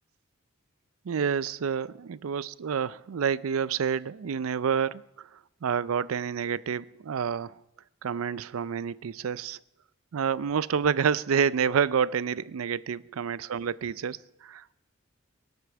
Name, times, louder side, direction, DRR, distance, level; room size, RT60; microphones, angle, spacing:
voice 1, 1.1-5.0 5.6-7.5 8.0-9.6 10.1-14.7, right 7 dB, 80° right, 20 dB, 0.4 m, -28 dB
22.5 x 8.2 x 6.9 m, 0.92 s
head